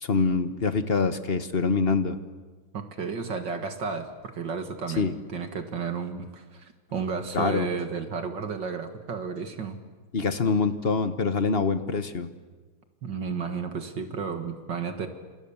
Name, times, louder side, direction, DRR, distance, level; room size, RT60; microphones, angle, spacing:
voice 1, 0.0-2.2 5.0-5.1 7.3-7.7 10.1-12.3, left 4 dB, 35° left, 10 dB, 1.2 m, -25 dB
voice 2, 2.7-9.8 13.0-15.1, right 5 dB, 60° right, 7 dB, 2.3 m, -32 dB
29.0 x 27.5 x 7.2 m, 1.4 s
omnidirectional pair, 2.3 m